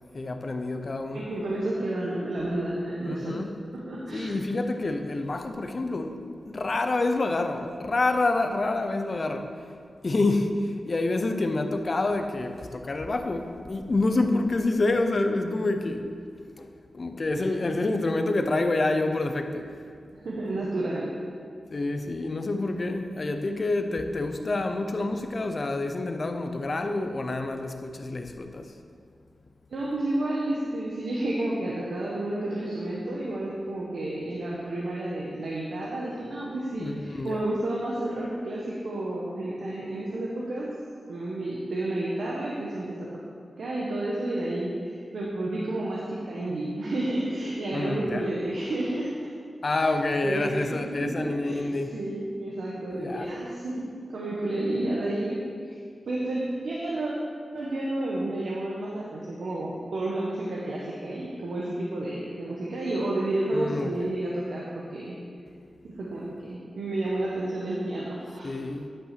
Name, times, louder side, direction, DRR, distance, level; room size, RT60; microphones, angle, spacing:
voice 1, 0.1-1.2 3.0-3.5 4.1-6.2 6.4-9.7 10.0-16.1 16.6-16.7 16.9-19.8 21.7-28.7 36.8-37.4 47.7-48.3 49.6-51.9 53.0-53.3 63.5-64.1 68.4-68.9, left 2 dB, 50° left, 6 dB, 0.8 m, -27 dB
voice 2, 1.1-3.4 3.7-4.4 17.3-17.5 20.1-21.1 29.7-40.8 41.1-43.2 43.6-49.1 49.8-49.9 50.2-51.7 51.9-55.7 56.0-57.1 57.5-65.2 65.8-68.5, right 1 dB, 85° right, -5 dB, 1.2 m, -31 dB
10.0 x 5.7 x 5.9 m, 2.3 s
cardioid pair, 70°, 0 cm